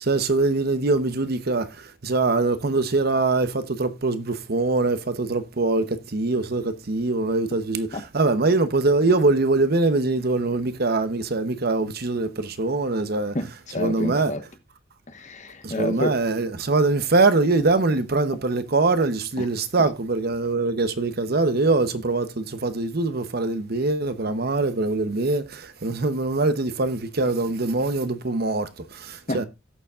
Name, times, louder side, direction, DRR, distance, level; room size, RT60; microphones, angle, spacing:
voice 1, 0.0-13.3 13.8-14.3 15.6-29.5, right 3 dB, 55° right, 0.9 m, -23 dB
voice 2, 13.3-14.4 15.1-16.1 19.4-19.5 29.3-29.5, left 2 dB, 40° left, 1.1 m, -29 dB
17.0 x 6.9 x 2.4 m
head